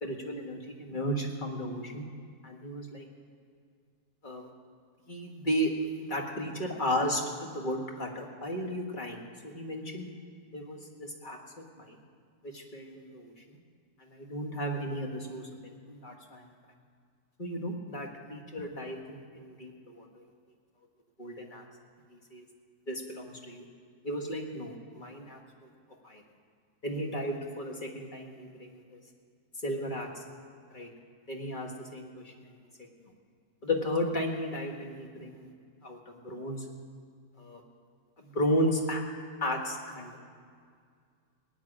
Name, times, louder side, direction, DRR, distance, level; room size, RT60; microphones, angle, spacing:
voice 1, 0.0-2.0 2.4-3.1 4.2-4.5 5.1-5.7 6.0-10.1 10.5-11.4 11.8-12.0 12.4-13.6 14.0-16.5 17.4-20.2 21.2-21.6 22.1-22.4 22.9-23.6 24.0-25.7 26.0-26.2 26.8-29.0 29.6-30.2 30.7-30.9 31.3-32.5 33.0-33.1 33.6-35.5 35.8-36.7 37.4-37.6 38.2-39.0 39.4-40.3, equal, 30° left, 1 dB, 1.7 m, -34 dB
19.0 x 6.5 x 9.9 m, 2.1 s
omnidirectional pair, 1.8 m